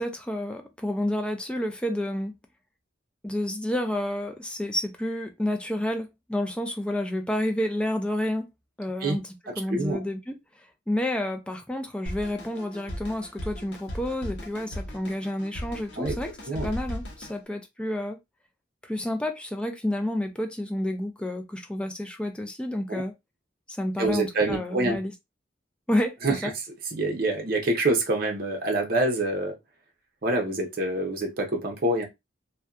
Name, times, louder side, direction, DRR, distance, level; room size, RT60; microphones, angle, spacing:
voice 1, 0.0-2.3 3.2-8.5 8.8-18.2 18.8-23.1 23.7-25.1 25.9-26.5, left 1 dB, 5° left, 0.3 m, -30 dB
voice 2, 9.7-10.0 16.0-16.1 16.5-16.7 22.9-23.0 24.0-25.0 26.2-26.3 26.9-29.6 30.2-32.1, right 2 dB, 50° right, 0.7 m, -26 dB
Drum kit, 12.1-17.4, equal, 60° left, 0.7 m, -37 dB
2.6 x 2.2 x 2.2 m
head